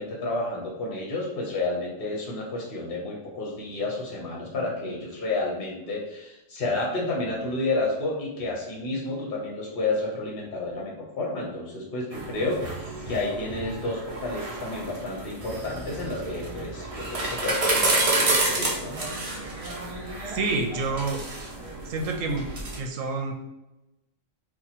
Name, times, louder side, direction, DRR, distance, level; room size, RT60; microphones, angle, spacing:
voice 1, 0.0-19.0, left 2 dB, 50° left, -3 dB, 0.8 m, -31 dB
sound 1, 12.1-22.8, right 2 dB, 60° right, 0.3 m, -30 dB
voice 2, 20.3-21.2 21.8-22.5 22.8-23.3, right 3 dB, 80° right, 3 dB, 1.0 m, -28 dB
2.8 x 2.3 x 4.0 m, 0.96 s
omnidirectional pair, 1.3 m